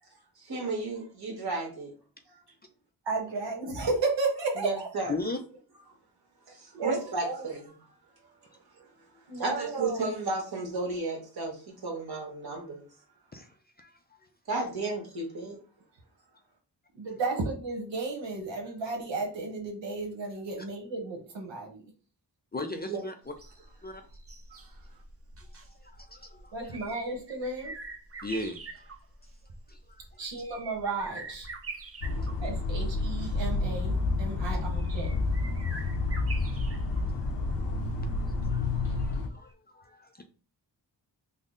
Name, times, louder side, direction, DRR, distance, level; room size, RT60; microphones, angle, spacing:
voice 1, 0.4-1.9 4.6-5.2 6.5-7.7 8.8-8.9 9.3-12.9 14.5-15.6 22.9-23.0, right 3 dB, 60° right, 1.4 m, -33 dB
voice 2, 3.0-4.7 6.7-7.4 9.3-10.1 16.9-21.8 26.5-27.7 30.2-31.5 32.4-35.2, right 3 dB, 85° right, 1.1 m, -33 dB
voice 3, 22.5-23.3 23.8-24.0 25.8-26.7 28.2-28.9 29.7-29.8 32.1-32.4 36.6-36.7 37.0-37.2 37.6-37.9 38.3-40.2, left 2 dB, 25° left, 0.4 m, -38 dB
sound 1, 23.3-39.2 39.5-39.6, right 3 dB, 35° right, 0.6 m, -46 dB
sound 2, 32.0-39.3, left 3 dB, 85° left, 0.7 m, -29 dB
3.6 x 2.1 x 3.7 m
wide cardioid pair, 95°, 43 cm